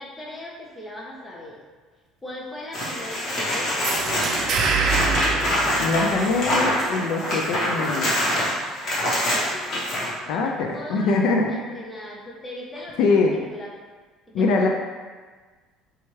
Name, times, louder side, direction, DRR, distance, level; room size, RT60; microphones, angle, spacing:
voice 1, 0.0-1.6 2.2-4.5 9.3-13.7 14.3-14.7, left 1 dB, 10° left, -4 dB, 0.6 m, -39 dB
sound 1, 2.7-10.1 12.8-12.9, equal, 35° left, 1.0 m, -25 dB
sound 2, 3.8-6.6, right 4 dB, 45° right, 0.4 m, -25 dB
voice 2, 5.8-8.4 10.3-11.6 13.0-13.4 14.3-14.7, left 3 dB, 65° left, 2 dB, 0.3 m, -23 dB
4.2 x 2.3 x 3.1 m, 1.4 s
cardioid pair, 165°, 0 cm